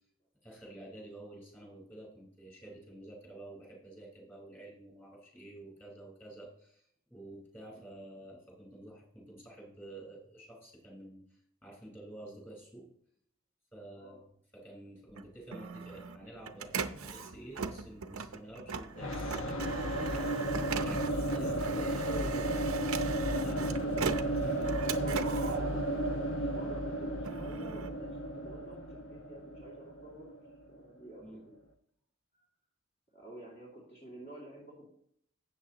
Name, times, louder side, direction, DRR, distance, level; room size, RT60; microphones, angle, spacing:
voice 1, 0.4-12.9 13.7-14.3 14.5-19.4 20.0-21.0 21.3-22.7 23.3-25.4 31.2-31.4, right 1 dB, 10° left, -2 dB, 4.4 m, -49 dB
Printer, 15.1-26.5 27.0-28.8, right 6 dB, 90° right, 0.7 m, -40 dB
sound 1, 19.0-30.8, right 1 dB, 65° left, 1.3 m, -33 dB
voice 2, 20.8-21.5 23.4-30.3 30.7-31.6 32.3-32.5 33.1-34.9, right 1 dB, 35° left, -6 dB, 2.5 m, -51 dB
sound 2, 24.4-27.4, right 5 dB, 50° right, 0.4 m, -45 dB
13.0 x 8.4 x 3.0 m, 0.67 s
head